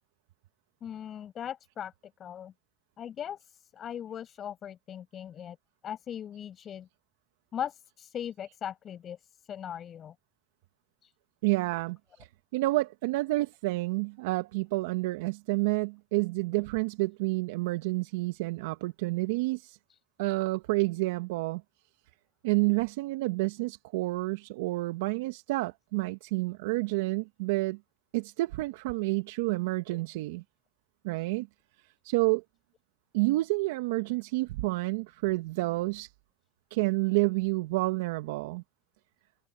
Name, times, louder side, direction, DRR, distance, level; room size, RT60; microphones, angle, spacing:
voice 1, 0.8-1.9 2.2-2.5 3.0-5.6 5.8-6.9 7.5-9.2 9.5-10.1 11.0-11.1 29.9-30.0, left 9 dB, 40° left, 6.0 m, -39 dB
voice 2, 11.4-19.8 20.2-21.6 22.4-27.8 28.1-30.4 31.0-31.5 32.0-32.4 33.1-36.1 36.7-38.6, right 21 dB, 75° right, 1.2 m, -29 dB
hypercardioid pair, 85°, 0 cm